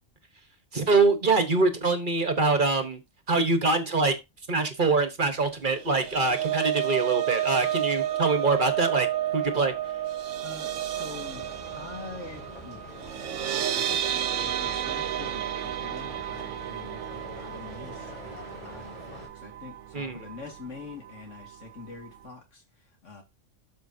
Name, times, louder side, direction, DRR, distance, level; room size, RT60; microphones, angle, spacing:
voice 1, 0.7-3.0 3.3-4.2 4.5-9.1 9.3-9.7 19.9-20.2, right 3 dB, 40° right, 1.4 m, -24 dB
sound 1, 5.7-19.9 20.3-20.5 20.8-20.9, right 11 dB, 75° right, 1.0 m, -31 dB
voice 2, 10.4-12.8 13.5-23.2, left 4 dB, 75° left, 2.5 m, -45 dB
sound 2, 10.9-19.3, left 1 dB, 40° left, 5.7 m, -45 dB
12.5 x 5.1 x 2.8 m
omnidirectional pair, 1.3 m